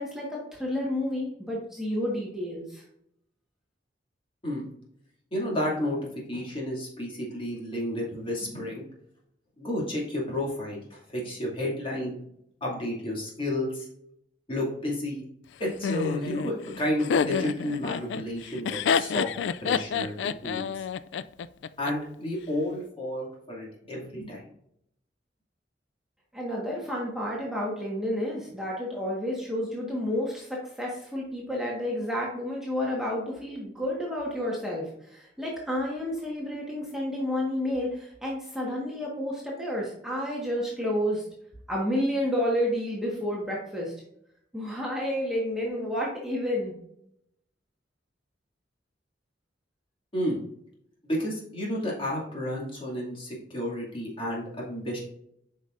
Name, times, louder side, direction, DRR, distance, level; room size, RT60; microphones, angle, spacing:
voice 1, 0.0-2.8 26.3-41.2 41.7-43.9 44.5-46.7, left 1 dB, 5° right, -4 dB, 1.4 m, -30 dB
voice 2, 5.3-6.0 6.3-8.8 9.6-12.2 12.6-13.8 14.5-15.2 15.6-19.3 19.6-20.1 20.4-20.8 21.8-24.4 50.1-50.4 51.0-55.0, left 1 dB, 30° left, -4 dB, 2.4 m, -31 dB
Laughter, 15.8-21.9, left 6 dB, 85° left, 0.3 m, -28 dB
8.3 x 5.5 x 2.5 m, 0.74 s
head